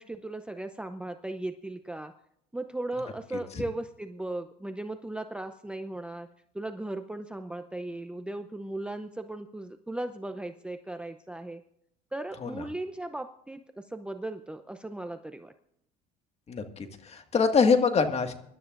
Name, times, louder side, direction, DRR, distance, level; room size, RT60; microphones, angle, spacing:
voice 1, 0.0-2.1 2.5-6.3 6.5-11.6 12.1-15.5, right 2 dB, 5° right, 8 dB, 0.6 m, -37 dB
voice 2, 16.5-18.3, left 5 dB, 35° left, 6 dB, 1.9 m, -24 dB
24.5 x 12.5 x 2.6 m, 0.75 s
supercardioid pair, 105°, 19 cm